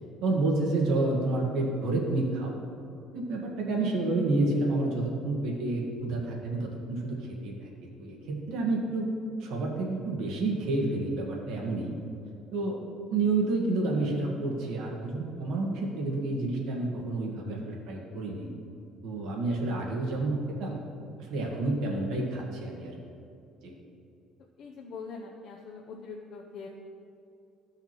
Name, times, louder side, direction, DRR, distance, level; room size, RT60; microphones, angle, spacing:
voice 1, 0.2-2.5 3.1-9.1 9.4-12.0 12.5-12.8 13.1-18.5 19.0-20.7 21.2-23.0 23.6-23.7, right 2 dB, 70° right, -1 dB, 1.5 m, -29 dB
voice 2, 24.6-26.7, left 4 dB, 50° left, 0 dB, 0.6 m, -43 dB
15.0 x 5.7 x 3.0 m, 2.6 s
cardioid pair, 175°, 0 cm